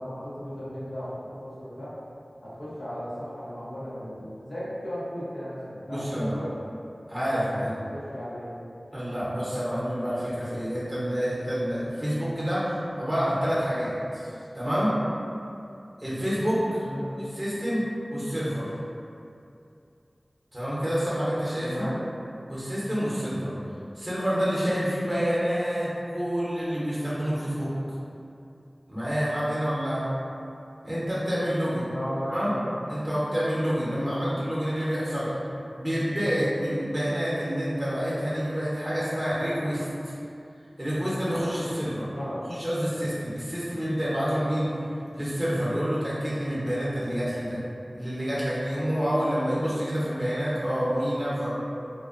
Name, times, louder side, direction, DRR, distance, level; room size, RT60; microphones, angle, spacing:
voice 1, 0.0-1.9 2.4-6.5 7.3-8.5 16.8-17.2 21.6-22.0 31.9-32.7 34.0-34.3 42.1-42.4, equal, 85° left, -11 dB, 0.7 m, -36 dB
voice 2, 5.9-6.3 7.1-7.7 8.9-14.3 14.5-14.9 16.0-16.9 17.2-17.9 18.1-18.7 20.5-21.9 22.5-23.5 23.9-27.7 28.9-30.1 30.8-31.9 32.3-32.5 32.9-35.4 35.7-40.1 40.8-42.1 42.5-44.7 45.1-47.6 47.9-51.5, equal, 10° right, -9 dB, 0.7 m, -28 dB
2.4 x 2.1 x 2.4 m, 2.6 s
wide cardioid pair, 45°, 0 cm